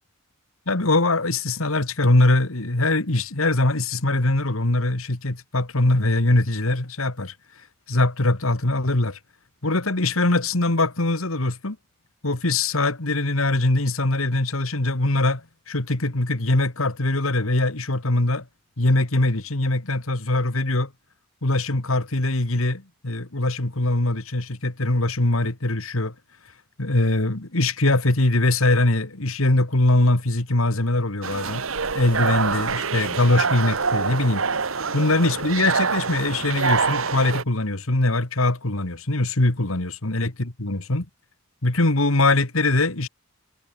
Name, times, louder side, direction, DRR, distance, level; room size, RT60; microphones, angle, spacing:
voice 1, 0.7-7.3 7.9-9.2 9.6-11.8 12.2-18.4 18.8-20.9 21.4-26.1 26.8-31.6 31.9-34.4 34.9-41.1 41.6-43.1, left 2 dB, 75° left, 2.2 m, -22 dB
sound 1, 31.2-37.4, right 5 dB, 70° right, 1.4 m, -25 dB
head